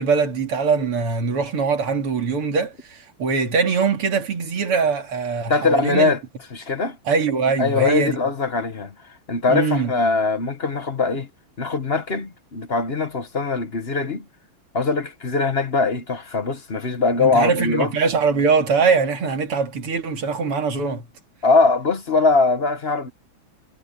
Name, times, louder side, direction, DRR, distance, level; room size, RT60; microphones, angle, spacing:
voice 1, 0.0-6.1 7.0-8.2 9.5-10.0 17.2-21.1, right 5 dB, 85° right, 3.3 m, -22 dB
voice 2, 5.5-6.2 6.5-7.0 7.6-8.9 9.3-11.3 11.6-14.2 14.7-17.9 21.4-23.1, left 3 dB, 35° left, 1.3 m, -21 dB
omnidirectional pair, 2.4 m